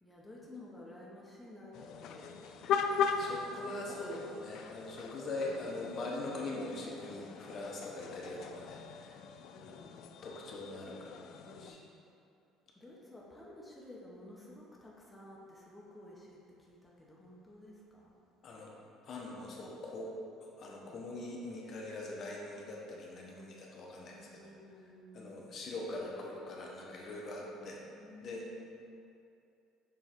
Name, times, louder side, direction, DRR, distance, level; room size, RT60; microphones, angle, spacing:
voice 1, 0.0-2.5 3.5-4.0 5.4-5.8 9.5-9.9 10.8-11.1 11.4-11.9 12.8-18.1 20.7-21.1 24.1-25.7 27.6-28.8, left 1 dB, 5° left, -5 dB, 0.7 m, -53 dB
sound 1, 1.7-11.7, left 6 dB, 55° left, 0.3 m, -39 dB
voice 2, 3.2-9.2 9.7-9.8 10.2-11.2 11.6-11.8 18.4-18.7 19.0-20.1 20.4-24.5 25.1-27.8 28.2-28.4, left 2 dB, 40° left, -2 dB, 0.8 m, -42 dB
6.9 x 3.1 x 4.4 m, 2.7 s
cardioid pair, 150°, 0 cm